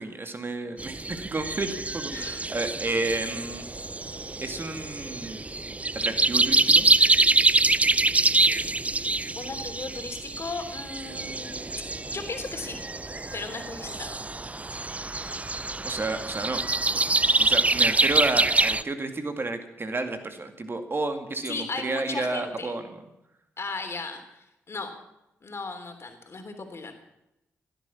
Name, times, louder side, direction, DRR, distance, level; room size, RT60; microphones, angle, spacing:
voice 1, 0.0-3.7 4.4-5.5 5.9-6.9 15.8-16.6 17.4-23.0, right 2 dB, 40° right, 7 dB, 2.2 m, -31 dB
sound 1, 0.8-18.8, right 2 dB, 25° right, 0.6 m, -25 dB
voice 2, 9.3-11.7 12.1-12.8 13.3-14.2 21.4-22.7 23.6-24.9 25.4-26.9, left 3 dB, 45° left, 6 dB, 3.3 m, -36 dB
16.0 x 11.0 x 7.2 m, 0.88 s
hypercardioid pair, 45°, 6 cm